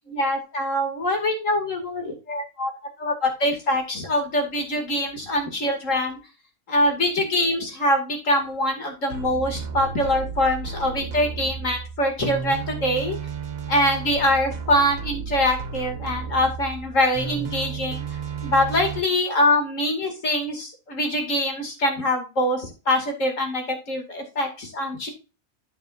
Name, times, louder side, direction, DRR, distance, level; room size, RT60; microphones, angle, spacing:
voice 1, 0.1-2.7 3.0-6.2 6.7-13.2 13.7-18.0 18.4-25.1, left 1 dB, 70° left, 3 dB, 2.8 m, -24 dB
sound 1, 9.1-19.0, right 6 dB, 85° right, 1.6 m, -33 dB
9.2 x 8.8 x 2.6 m, 0.32 s
omnidirectional pair, 1.4 m